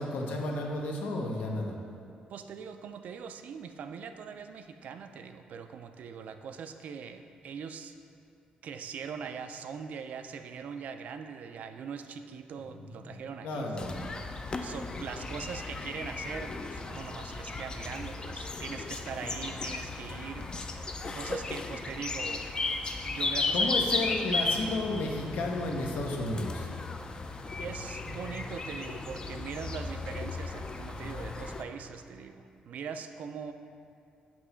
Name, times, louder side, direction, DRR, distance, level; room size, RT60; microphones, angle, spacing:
voice 1, 0.0-1.7 13.1-14.1 23.5-26.7, left 2 dB, 80° left, 0 dB, 0.7 m, -33 dB
voice 2, 2.3-7.9 8.6-14.0 14.6-20.8 21.1-22.5 23.1-23.7 27.6-33.5, right 6 dB, 65° right, 8 dB, 0.3 m, -41 dB
sound 1, 13.8-31.6, left 3 dB, 30° left, 0.4 m, -35 dB
6.1 x 2.9 x 5.6 m, 2.5 s
cardioid pair, 105°, 3 cm